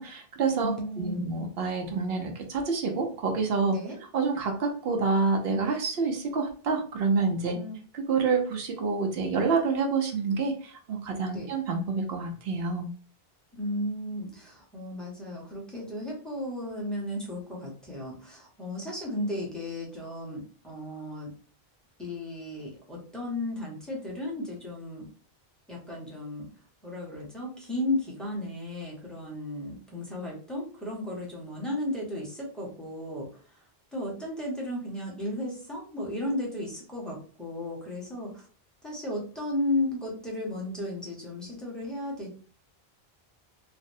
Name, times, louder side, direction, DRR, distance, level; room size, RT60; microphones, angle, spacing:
voice 1, 0.0-3.8 4.1-7.6 8.1-12.9, right 4 dB, 70° right, 2 dB, 0.9 m, -28 dB
voice 2, 0.6-1.3 3.7-4.0 7.5-7.8 11.3-11.5 13.5-21.3 22.0-25.1 25.7-26.5 26.8-33.4 33.9-38.4 38.8-42.4, left 1 dB, ahead, -4 dB, 0.9 m, -34 dB
3.3 x 2.0 x 2.6 m, 0.41 s
omnidirectional pair, 1.0 m